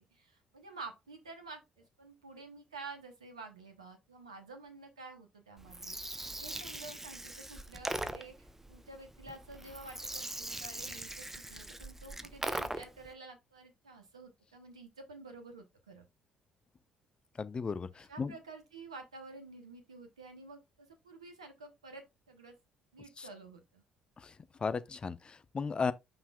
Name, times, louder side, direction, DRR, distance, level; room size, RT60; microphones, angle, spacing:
voice 1, 0.1-16.0 18.0-22.6 22.9-23.8, right 3 dB, 85° right, 0.8 m, -50 dB
Gurgling, 5.6-13.1, right 1 dB, 10° right, 0.9 m, -41 dB
voice 2, 17.4-18.3 23.2-23.3 24.2-24.3 24.6-25.9, left 5 dB, 30° left, 0.7 m, -35 dB
7.5 x 5.7 x 2.3 m
figure-of-eight pair, 50°, 3 cm